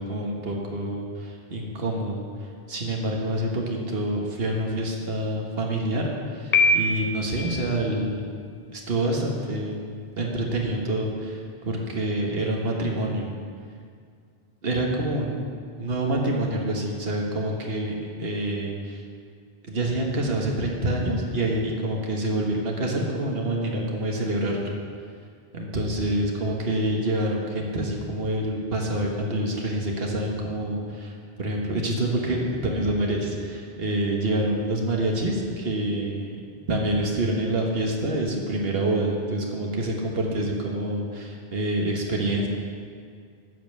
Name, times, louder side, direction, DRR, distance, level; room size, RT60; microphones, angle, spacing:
voice 1, 0.0-2.2 2.7-8.3 8.7-13.3 14.6-15.5 15.8-19.0 19.7-24.6 25.5-36.4 36.7-42.5, right 1 dB, 70° right, 0 dB, 1.7 m, -27 dB
Piano, 6.5-7.5, left 2 dB, 40° left, 1.0 m, -22 dB
11.5 x 5.4 x 7.8 m, 2.2 s
omnidirectional pair, 1.0 m